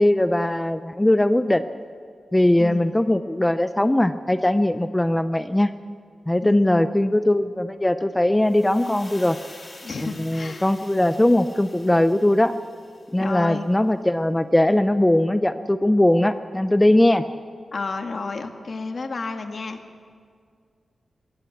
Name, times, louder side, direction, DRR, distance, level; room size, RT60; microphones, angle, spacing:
voice 1, 0.0-1.6 2.3-5.7 6.3-9.4 10.0-12.5 13.1-17.2, left 1 dB, 15° left, 11 dB, 0.6 m, -20 dB
voice 2, 2.6-3.0 6.4-6.8 9.8-10.7 13.2-13.6 17.7-19.8, left 4 dB, 50° left, 5 dB, 1.6 m, -31 dB
sound 1, 8.4-13.4, left 2 dB, 30° left, 3.2 m, -47 dB
21.0 x 14.5 x 8.5 m, 2.1 s
wide cardioid pair, 85°, 0 cm